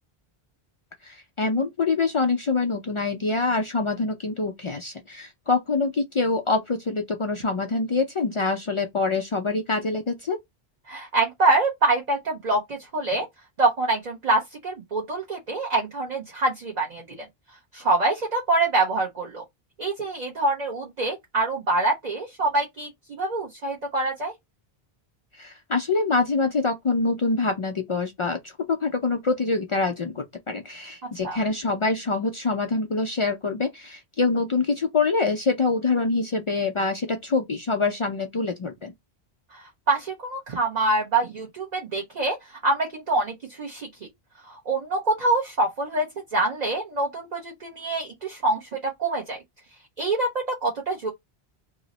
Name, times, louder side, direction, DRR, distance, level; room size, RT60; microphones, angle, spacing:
voice 1, 1.0-10.4 25.4-38.9, left 3 dB, 55° left, 0.3 m, -25 dB
voice 2, 10.9-13.2 13.6-17.3 17.7-19.4 19.8-24.3 31.2-31.4 39.9-42.4 42.6-43.9 44.5-49.4 50.0-51.1, right 2 dB, 45° right, 0.8 m, -25 dB
2.9 x 2.0 x 3.7 m
omnidirectional pair, 1.0 m